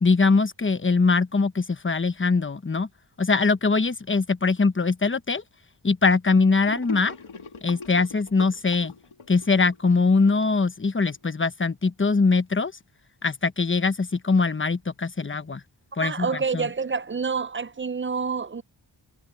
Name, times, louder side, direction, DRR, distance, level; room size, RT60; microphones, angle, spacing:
voice 1, 0.0-2.9 3.2-5.4 5.8-7.1 7.6-8.9 9.3-12.7 13.2-15.6 16.0-16.3 16.5-16.7, left 4 dB, 25° left, 1.0 m, -22 dB
Gurgling / Sink (filling or washing), 6.7-11.1, left 5 dB, 75° left, 2.0 m, -41 dB
voice 2, 16.0-18.6, right 5 dB, 25° right, 0.5 m, -27 dB
wide cardioid pair, 70°, 49 cm